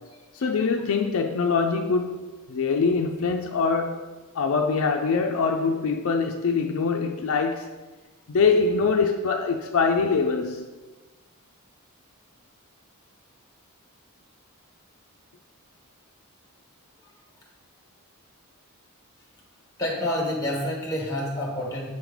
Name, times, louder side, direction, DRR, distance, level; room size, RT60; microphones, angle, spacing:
voice 1, 0.3-4.0 4.3-7.7 8.3-10.7, left 4 dB, 65° left, 0.4 m, -24 dB
voice 2, 19.8-21.9, left 1 dB, 15° left, 1.4 m, -28 dB
6.9 x 3.2 x 5.0 m
head